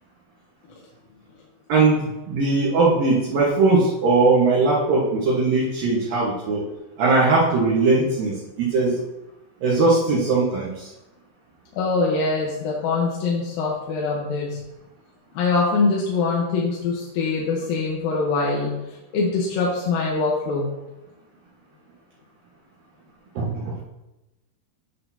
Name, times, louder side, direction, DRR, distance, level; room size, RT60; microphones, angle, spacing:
voice 1, 1.7-6.6 7.0-8.9 9.6-10.9 23.4-23.7, right 3 dB, 65° right, -6 dB, 2.7 m, -20 dB
voice 2, 11.7-14.6 15.3-18.7 19.1-20.7, left 4 dB, 70° left, -3 dB, 2.5 m, -23 dB
10.0 x 6.7 x 2.7 m, 0.98 s
omnidirectional pair, 4.9 m